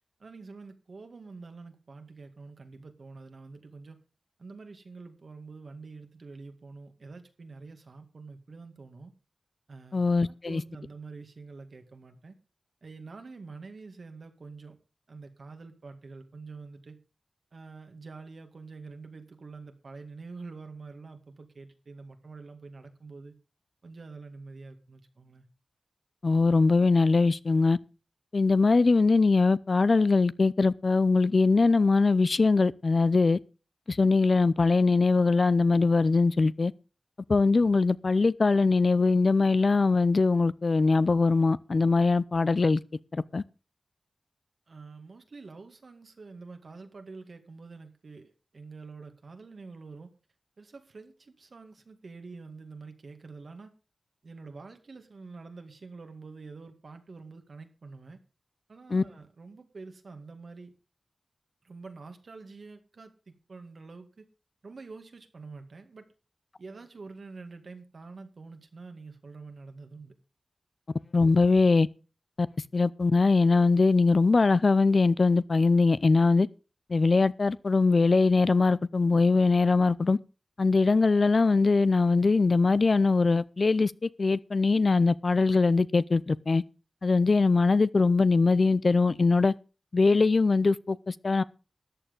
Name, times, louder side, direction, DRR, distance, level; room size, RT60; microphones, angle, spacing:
voice 1, 0.2-4.0 4.4-9.1 9.7-12.4 12.8-14.8 15.1-17.0 17.5-23.3 23.8-25.5 44.7-50.1 50.6-53.7 54.2-58.2 58.7-60.7 61.6-64.3 64.6-66.1 66.6-70.1, right 4 dB, 70° right, 2.1 m, -46 dB
voice 2, 9.9-10.6 26.2-27.8 28.3-33.4 33.9-36.7 37.3-42.8 43.1-43.4 58.9-59.0 71.1-71.9 72.4-72.5 72.7-76.5 76.9-80.2 80.6-86.6 87.0-89.5 89.9-91.4, left 3 dB, 60° left, 0.6 m, -22 dB
13.5 x 8.9 x 5.3 m
cardioid pair, 55°, 0 cm